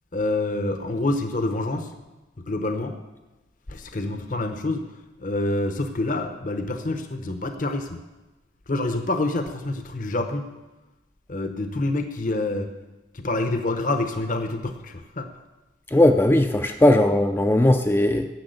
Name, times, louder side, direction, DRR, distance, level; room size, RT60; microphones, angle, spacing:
voice 1, 0.1-1.9 2.4-3.0 3.7-4.8 5.2-8.0 8.7-10.5 11.3-12.7 13.1-15.3, left 2 dB, 45° left, 7 dB, 0.7 m, -27 dB
voice 2, 15.9-18.3, left 1 dB, 10° left, 6 dB, 0.4 m, -18 dB
10.5 x 7.0 x 7.9 m, 1.1 s
head